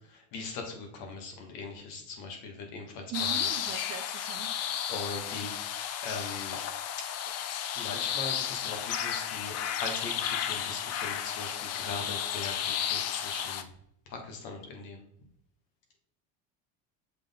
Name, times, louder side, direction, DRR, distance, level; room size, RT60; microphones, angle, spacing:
voice 1, 0.1-3.4 4.9-5.6 6.0-6.6 7.0-7.1 7.7-13.6 14.1-15.0, left 3 dB, 70° left, 3 dB, 1.8 m, -40 dB
sound 1, 3.1-13.6, left 9 dB, 45° left, 0.5 m, -33 dB
voice 2, 3.1-4.6, right 10 dB, 45° right, 11 dB, 0.5 m, -40 dB
6.7 x 3.9 x 3.6 m, 0.73 s
cardioid pair, 140°, 37 cm